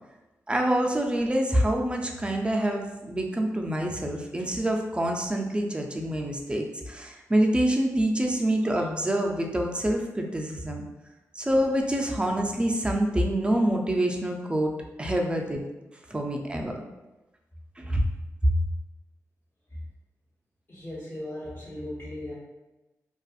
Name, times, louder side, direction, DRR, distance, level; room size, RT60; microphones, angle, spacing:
voice 1, 0.5-10.8 11.3-14.7 15.0-15.6 16.1-16.9 17.8-18.0 18.4-18.5, right 1 dB, 15° right, 2 dB, 0.4 m, -26 dB
voice 2, 20.7-22.3, left 1 dB, 35° left, -9 dB, 1.2 m, -37 dB
2.5 x 2.4 x 2.4 m, 1.0 s
cardioid pair, 60°, 6 cm